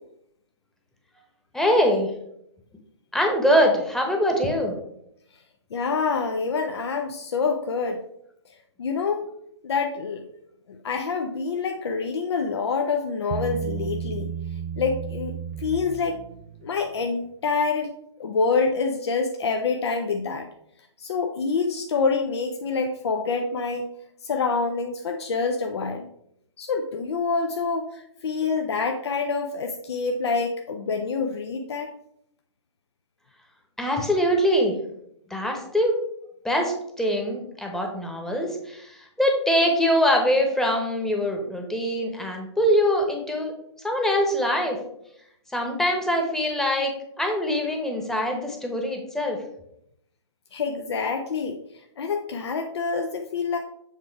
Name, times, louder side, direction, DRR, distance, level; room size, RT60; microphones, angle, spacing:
voice 1, 1.5-2.1 3.1-4.7 33.8-34.8 35.3-35.9 36.4-43.5 43.8-44.8 45.5-46.9 47.2-49.4, equal, 5° left, 2 dB, 1.0 m, -23 dB
voice 2, 5.7-8.0 8.8-9.2 9.6-10.3 10.7-14.3 14.8-16.2 16.6-17.9 18.2-20.5 21.0-23.9 24.2-26.1 26.6-31.9 50.5-51.6 52.0-53.6, left 4 dB, 65° left, 4 dB, 0.7 m, -26 dB
Bass guitar, 13.3-16.7, right 8 dB, 35° right, 0.3 m, -33 dB
7.5 x 3.5 x 4.6 m, 0.74 s
figure-of-eight pair, 125°, 15 cm